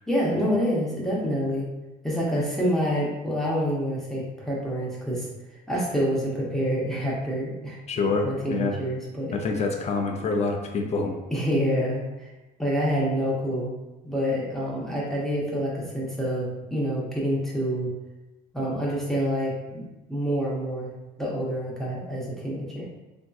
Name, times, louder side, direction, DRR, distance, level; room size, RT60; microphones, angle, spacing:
voice 1, 0.1-1.7 2.0-5.3 5.7-7.8 8.2-9.4 11.3-12.3 12.6-13.7 14.0-17.9 18.5-20.9 21.2-22.9, equal, ahead, -6 dB, 0.7 m, -27 dB
voice 2, 7.9-8.8 9.3-11.1, left 4 dB, 40° left, 3 dB, 0.5 m, -26 dB
3.4 x 2.6 x 2.3 m, 1.1 s
cardioid pair, 110°, 17 cm